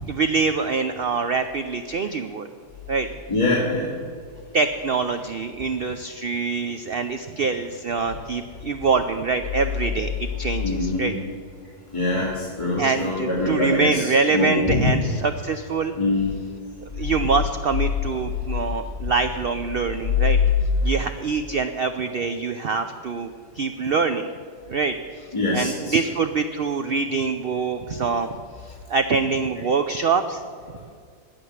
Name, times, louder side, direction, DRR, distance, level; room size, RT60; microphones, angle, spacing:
voice 1, 0.0-2.5 2.9-3.1 4.5-11.1 12.8-15.9 17.0-20.4 20.8-23.3 23.6-24.3 24.7-28.3 28.6-30.4, right 4 dB, 75° right, 8 dB, 0.5 m, -25 dB
voice 2, 3.3-3.9 10.6-11.1 11.9-14.9 16.0-16.3 25.3-26.0, left 2 dB, 20° left, -8 dB, 2.5 m, -23 dB
10.5 x 8.8 x 9.6 m, 2.1 s
omnidirectional pair, 1.7 m